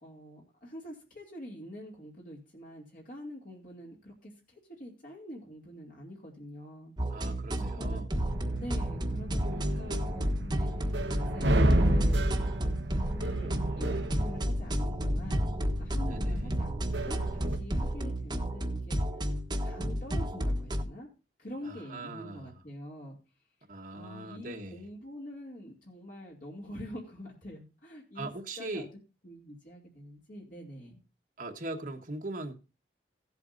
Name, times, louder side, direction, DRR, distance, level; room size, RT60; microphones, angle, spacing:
voice 1, 0.0-6.9 7.5-8.0 8.5-12.2 12.5-19.0 19.6-21.1 21.4-23.2 23.9-28.3 28.6-28.9 29.2-31.0, equal, 50° left, 2.6 m, -46 dB
sound 1, 7.0-20.8, equal, 25° right, 1.3 m, -32 dB
voice 2, 7.1-8.1 16.1-16.5 21.6-22.5 23.7-24.9 28.1-28.9 31.4-32.5, right 2 dB, 50° right, 1.4 m, -40 dB
sound 2, 8.3-17.6, right 1 dB, 85° right, 1.3 m, -31 dB
17.0 x 8.2 x 2.6 m
head